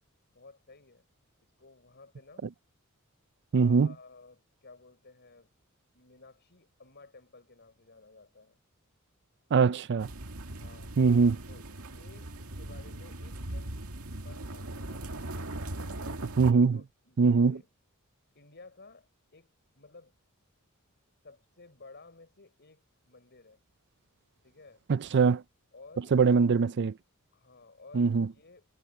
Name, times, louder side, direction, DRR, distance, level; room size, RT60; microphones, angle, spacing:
voice 1, 0.3-1.1 1.6-2.5 3.5-5.5 5.9-8.6 10.6-10.9 11.5-13.7 14.2-15.3 15.8-16.2 16.7-17.7 18.3-20.1 21.2-23.6 24.4-24.8 25.7-26.2 27.3-28.7, left 3 dB, 50° left, 6.5 m, -55 dB
voice 2, 3.5-3.9 9.5-10.1 11.0-11.4 16.4-16.8 17.2-17.6 24.9-25.4 26.1-27.0 27.9-28.3, right 5 dB, 55° right, 0.4 m, -22 dB
sound 1, 10.0-16.5, right 1 dB, 85° right, 2.0 m, -39 dB
head